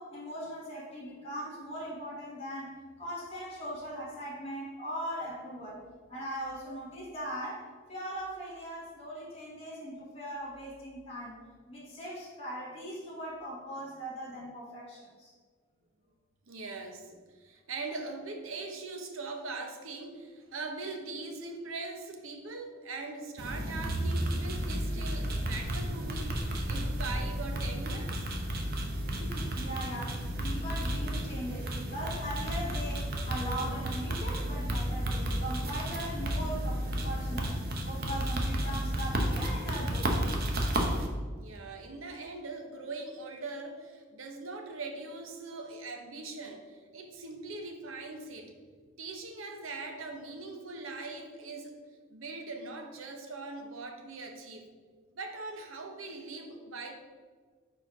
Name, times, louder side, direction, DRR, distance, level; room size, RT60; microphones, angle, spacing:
voice 1, 0.0-5.8 6.1-11.4 11.7-15.3 29.2-37.5 37.9-40.1, equal, 30° left, -7 dB, 1.2 m, -40 dB
voice 2, 16.5-28.2 41.4-48.5 49.0-51.7 52.1-54.7 55.1-56.9, right 3 dB, 85° right, 4 dB, 0.8 m, -41 dB
sound 1, 23.4-41.1, right 1 dB, 50° right, 0.7 m, -32 dB
4.6 x 4.4 x 4.7 m, 1.5 s
head